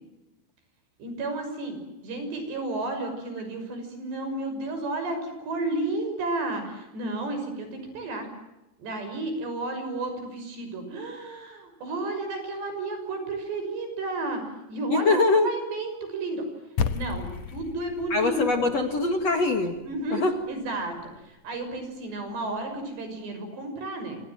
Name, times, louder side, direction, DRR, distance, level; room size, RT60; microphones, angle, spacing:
voice 1, 1.0-1.8 2.0-8.3 8.8-14.4 14.7-16.4 16.9-18.6 19.9-21.0 21.3-24.2, right 2 dB, 70° right, 7 dB, 8.2 m, -32 dB
voice 2, 14.9-15.5 18.1-19.8 20.1-20.3, left 3 dB, 45° left, 6 dB, 2.5 m, -23 dB
sound 1, 16.8-21.3, left 6 dB, 85° left, 1.5 m, -34 dB
27.5 x 27.0 x 7.8 m, 0.97 s
omnidirectional pair, 5.1 m